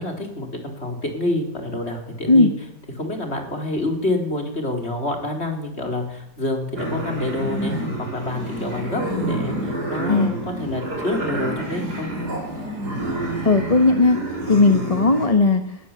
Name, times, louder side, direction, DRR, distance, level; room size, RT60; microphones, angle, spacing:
voice 1, 0.0-2.5 2.9-12.1, left 2 dB, 40° left, 3 dB, 4.5 m, -27 dB
sound 1, 6.8-15.3, right 1 dB, 90° right, 6.4 m, -28 dB
voice 2, 13.4-14.2 14.5-15.6, left 3 dB, 25° left, 7 dB, 1.2 m, -16 dB
20.0 x 19.5 x 8.5 m, 0.79 s
omnidirectional pair, 1.7 m